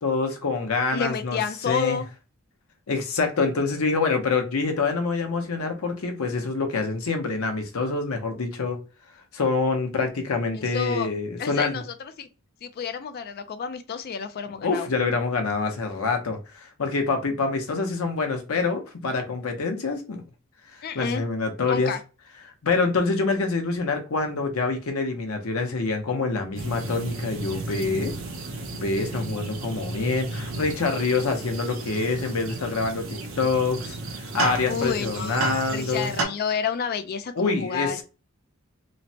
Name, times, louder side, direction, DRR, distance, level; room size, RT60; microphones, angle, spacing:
voice 1, 0.0-1.4 1.7-2.0 2.9-8.8 9.3-11.8 14.6-20.2 20.9-21.9 22.6-28.1 28.7-36.1 37.4-38.0, left 4 dB, 85° left, 0.7 m, -26 dB
voice 2, 0.9-2.1 10.5-11.1 11.4-12.3 12.6-14.9 20.8-21.2 21.6-22.0 34.7-35.4 35.7-38.0, left 6 dB, 45° left, 0.3 m, -30 dB
sound 1, 26.6-36.3, right 3 dB, 70° right, 0.7 m, -33 dB
3.1 x 2.0 x 2.7 m
head